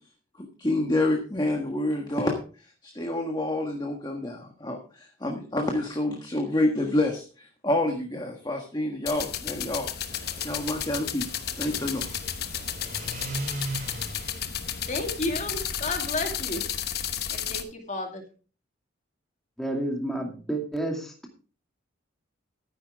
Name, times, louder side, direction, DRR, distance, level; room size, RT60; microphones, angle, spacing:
voice 1, 0.4-2.4 2.8-11.3 11.6-12.1, left 1 dB, 20° left, 2 dB, 1.5 m, -28 dB
sound 1, 9.1-17.6, left 9 dB, 50° left, 1.0 m, -33 dB
sound 2, 9.9-16.2, right 2 dB, 40° right, 2.6 m, -40 dB
voice 2, 14.9-16.6 17.3-18.2, left 2 dB, 35° left, 3 dB, 2.3 m, -32 dB
voice 3, 19.6-21.1, right 1 dB, ahead, 1 dB, 2.3 m, -30 dB
13.0 x 10.0 x 3.6 m, 0.36 s
head